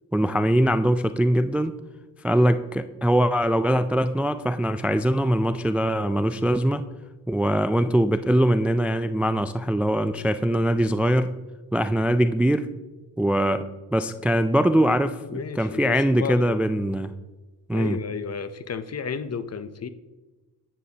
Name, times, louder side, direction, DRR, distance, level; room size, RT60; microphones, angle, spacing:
voice 1, 0.1-1.8 2.2-6.8 7.3-11.3 11.7-12.7 13.2-13.6 13.9-15.2 15.6-17.1 17.7-18.0, equal, 5° right, 11 dB, 0.3 m, -22 dB
voice 2, 15.3-16.6 17.7-19.9, left 6 dB, 40° left, 13 dB, 0.7 m, -32 dB
10.0 x 9.1 x 2.9 m, 1.2 s
cardioid pair, 75°, 39 cm